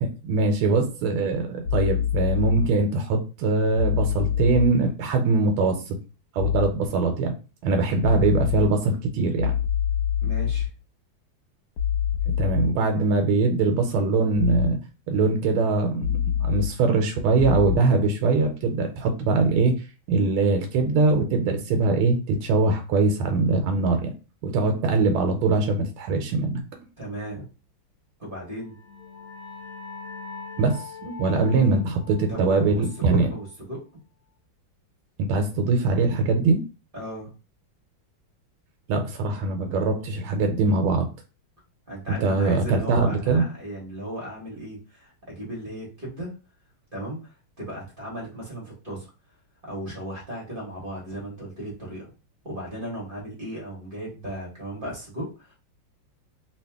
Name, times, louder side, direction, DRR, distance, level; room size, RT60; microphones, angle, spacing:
voice 1, 0.0-6.0 6.3-7.3 7.6-9.5 12.4-14.8 15.1-19.7 20.1-24.1 24.4-26.6 30.6-33.3 35.2-36.6 38.9-41.1 42.1-43.4, right 3 dB, 90° right, 4 dB, 1.5 m, -22 dB
sound 1, 1.6-2.7 3.8-4.7 6.4-6.7 8.0-8.7 9.4-10.7 11.8-12.7 14.4-14.7 16.0-16.7 17.4-17.8, left 9 dB, 75° left, 0.8 m, -25 dB
voice 2, 10.2-10.7 27.0-27.4 28.2-28.8 32.3-33.8 36.9-37.3 41.9-46.3 46.9-49.1 49.6-52.1 52.4-55.5, right 1 dB, 30° right, -4 dB, 1.2 m, -36 dB
sound 2, 28.5-33.9, left 5 dB, 60° left, 1.4 m, -43 dB
3.1 x 2.8 x 3.4 m, 0.31 s
omnidirectional pair, 2.3 m